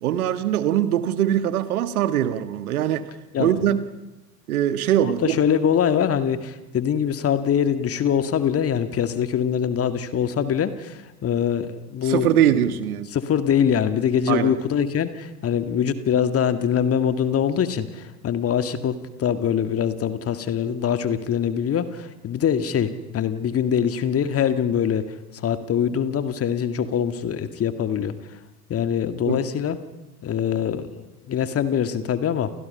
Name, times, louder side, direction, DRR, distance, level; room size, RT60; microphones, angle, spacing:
voice 1, 0.0-3.0 3.4-3.9 4.5-5.4 12.0-13.1 14.3-14.5 29.3-29.4, right 11 dB, 60° right, 11 dB, 1.8 m, -22 dB
voice 2, 3.3-3.7 5.0-12.4 13.1-25.1 25.4-28.1 28.7-29.8 30.2-32.5, left 8 dB, 30° left, 10 dB, 2.0 m, -23 dB
29.5 x 28.5 x 5.7 m, 1.0 s
figure-of-eight pair, 75°, 48 cm